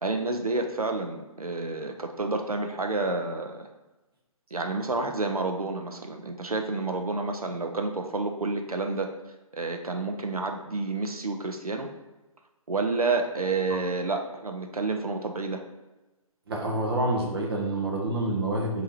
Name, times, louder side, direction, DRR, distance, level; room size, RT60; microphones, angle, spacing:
voice 1, 0.0-3.7 4.5-9.1 9.5-11.9 12.7-15.6, right 3 dB, 80° right, 4 dB, 0.7 m, -29 dB
voice 2, 16.5-18.8, right 1 dB, 40° right, 0 dB, 1.0 m, -27 dB
5.2 x 2.9 x 3.2 m, 1.1 s
figure-of-eight pair, 140°, 19 cm